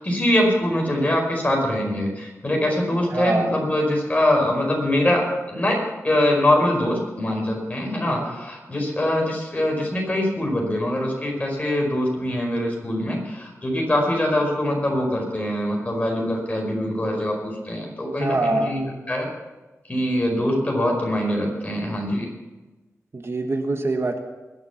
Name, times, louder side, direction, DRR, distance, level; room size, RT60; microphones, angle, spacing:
voice 1, 0.0-5.2 5.5-5.8 6.0-18.8 19.1-19.3 19.9-22.3, left 1 dB, 25° left, 0 dB, 4.9 m, -23 dB
voice 2, 3.1-3.5 8.1-8.3 18.2-18.8 23.1-24.2, right 2 dB, 50° right, 5 dB, 1.5 m, -24 dB
21.0 x 7.1 x 7.2 m, 1.2 s
wide cardioid pair, 85°, 5 cm